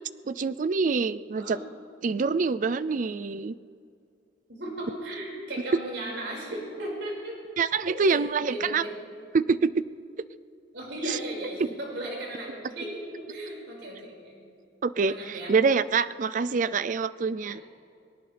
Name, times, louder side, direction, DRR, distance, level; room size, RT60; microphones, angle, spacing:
voice 1, 0.2-1.6 2.0-3.6 7.6-8.8 9.3-9.8 11.1-11.2 14.8-17.6, right 4 dB, 45° right, 15 dB, 0.4 m, -26 dB
voice 2, 4.5-7.4 7.9-8.9 10.7-14.4 15.0-15.5 17.5-17.6, right 1 dB, 75° right, -3 dB, 5.3 m, -36 dB
22.0 x 19.0 x 3.4 m, 2.4 s
head